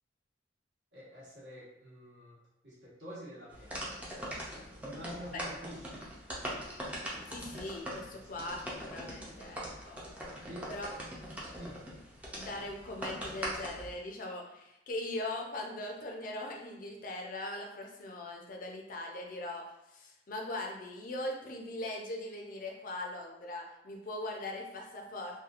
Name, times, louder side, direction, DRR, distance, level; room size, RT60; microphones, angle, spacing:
voice 1, 0.9-2.4 2.6-4.0 4.8-6.1 8.1-8.5 10.4-10.7 11.5-11.8, equal, 60° right, -8 dB, 1.0 m, -47 dB
sound 1, 3.5-14.0, equal, 10° right, 0.4 m, -42 dB
voice 2, 7.3-8.6 8.9-10.0 10.7-10.9 11.6-11.7 12.3-25.4, left 1 dB, 45° left, 1 dB, 0.4 m, -40 dB
2.8 x 2.3 x 2.4 m, 0.85 s
head